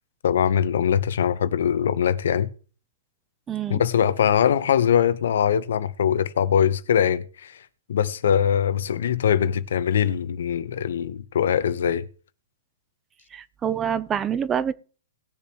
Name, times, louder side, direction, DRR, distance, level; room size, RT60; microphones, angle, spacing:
voice 1, 0.2-2.5 3.7-7.6 7.9-12.1, left 8 dB, 70° left, 0.9 m, -22 dB
voice 2, 3.5-3.8 13.3-14.7, right 8 dB, 20° right, 0.5 m, -26 dB
19.5 x 7.0 x 3.0 m
hypercardioid pair, 140°, 0 cm